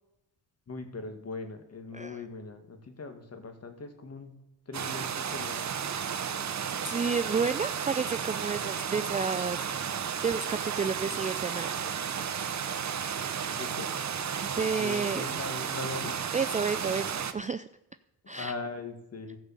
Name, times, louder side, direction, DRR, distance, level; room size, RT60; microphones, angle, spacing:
voice 1, 0.7-4.3 4.7-5.8 13.6-13.9 14.8-16.2 18.3-19.4, left 3 dB, 35° left, 6 dB, 2.1 m, -40 dB
voice 2, 1.9-2.2 6.8-11.7 14.4-15.2 16.3-17.7 18.3-18.5, right 5 dB, 20° right, 12 dB, 0.4 m, -31 dB
sound 1, 4.7-17.3, right 7 dB, 40° right, 0.9 m, -33 dB
15.5 x 5.3 x 7.4 m, 0.90 s
cardioid pair, 90°, 41 cm